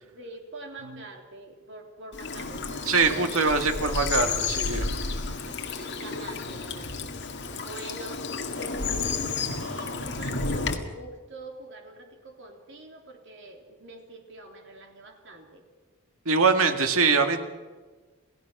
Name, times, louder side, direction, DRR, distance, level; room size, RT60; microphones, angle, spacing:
voice 1, 0.0-4.0 4.6-8.3 8.6-15.6, right 2 dB, 60° right, 3 dB, 3.5 m, -45 dB
Bird vocalization bird call bird song / Stream, 2.1-10.8, left 4 dB, 55° left, 2.1 m, -31 dB
voice 2, 2.8-4.9 16.3-17.4, right 4 dB, 85° right, 6 dB, 2.0 m, -23 dB
29.0 x 16.5 x 6.1 m, 1.4 s
head